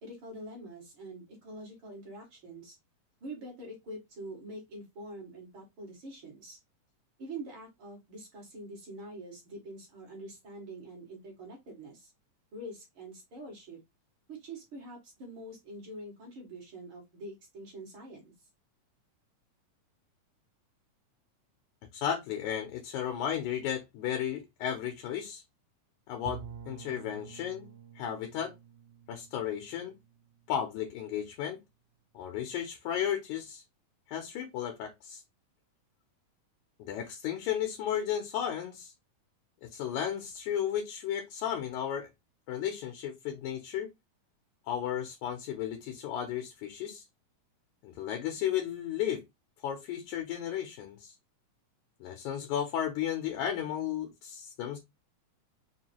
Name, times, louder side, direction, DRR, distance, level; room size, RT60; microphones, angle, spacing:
voice 1, 0.0-2.8 3.2-6.6 7.2-12.1 12.5-13.8 14.3-18.3, right 1 dB, 45° right, 2.3 m, -45 dB
voice 2, 21.9-25.4 26.1-27.7 28.0-28.5 29.1-29.9 30.5-31.6 32.1-33.6 34.1-35.2 36.8-38.9 39.6-42.1 42.5-43.9 44.7-47.0 47.8-49.2 49.6-51.1 52.0-54.8, left 9 dB, 75° left, 2.0 m, -34 dB
Bowed string instrument, 26.3-31.1, right 7 dB, 80° right, 2.2 m, -48 dB
5.3 x 2.7 x 2.8 m
omnidirectional pair, 3.6 m